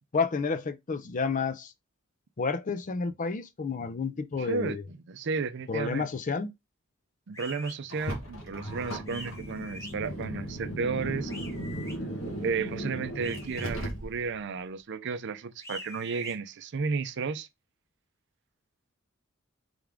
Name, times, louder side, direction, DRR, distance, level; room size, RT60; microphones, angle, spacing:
voice 1, 0.1-1.7 2.4-4.8 5.7-6.5, left 4 dB, 40° left, 0.5 m, -30 dB
voice 2, 4.4-6.1 7.3-11.3 12.4-17.5, right 5 dB, 60° right, 0.5 m, -33 dB
sound 1, 7.3-7.8 9.1-9.9 11.3-12.0 13.2-13.7 15.6-16.3, left 1 dB, 15° left, 1.4 m, -44 dB
Car, 7.9-14.4, right 1 dB, 70° left, 1.3 m, -36 dB
3.5 x 3.5 x 3.5 m
head